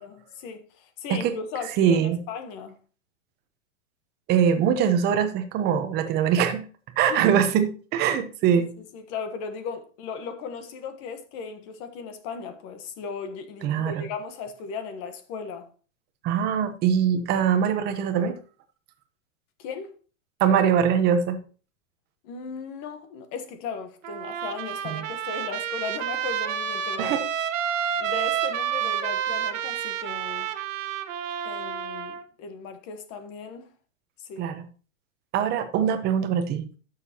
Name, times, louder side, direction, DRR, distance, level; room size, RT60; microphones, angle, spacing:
voice 1, 0.0-2.8 7.1-7.4 8.5-15.7 19.6-20.0 22.2-27.2 28.0-30.5 31.4-33.7 34.2-34.5, left 5 dB, 35° left, 1.3 m, -37 dB
voice 2, 1.8-2.2 4.3-6.6 7.0-8.7 13.6-14.1 16.2-18.4 20.4-21.4 24.8-25.0 27.0-27.2 34.4-34.5 35.3-36.6, right 8 dB, 25° right, 0.9 m, -22 dB
Trumpet, 24.0-32.2, right 9 dB, 75° right, 1.2 m, -29 dB
12.0 x 6.8 x 2.9 m
supercardioid pair, 150°, 38 cm